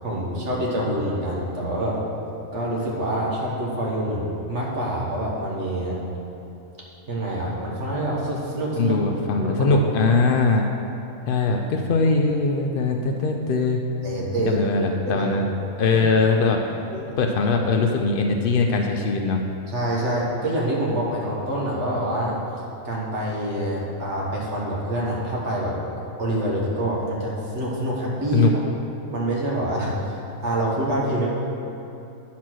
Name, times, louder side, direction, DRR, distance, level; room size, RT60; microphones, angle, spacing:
voice 1, 0.0-2.0 2.5-6.0 7.1-9.0 9.3-10.1 14.0-15.3 15.9-16.0 16.9-17.1 19.7-22.4 22.8-25.8 26.2-28.5 29.1-31.3, right 1 dB, 55° right, -4 dB, 1.6 m, -26 dB
voice 2, 8.8-10.6 11.3-13.8 14.5-15.5 15.8-16.6 17.2-19.4 28.3-28.5, left 3 dB, 85° left, 3 dB, 0.4 m, -21 dB
9.3 x 4.3 x 6.1 m, 2.8 s
omnidirectional pair, 1.6 m